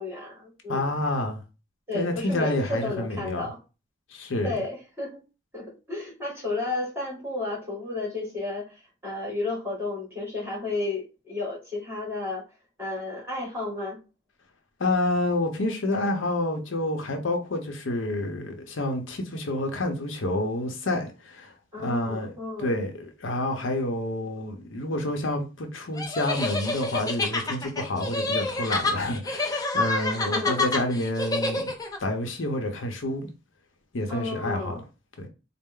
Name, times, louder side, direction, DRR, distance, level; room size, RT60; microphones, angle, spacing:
voice 1, 0.0-0.8 1.9-3.6 4.4-5.2 5.5-8.8 9.0-12.4 12.8-14.0 21.7-22.8 30.3-30.6 34.1-34.8, left 2 dB, 10° right, 2.0 m, -32 dB
voice 2, 0.7-1.4 1.9-3.5 4.1-4.5 14.8-31.7 32.0-33.3 33.9-34.8 35.2-35.3, left 1 dB, 75° left, 0.8 m, -28 dB
sound 1, 26.0-32.0, left 2 dB, 20° left, 0.6 m, -28 dB
4.2 x 2.0 x 3.7 m
head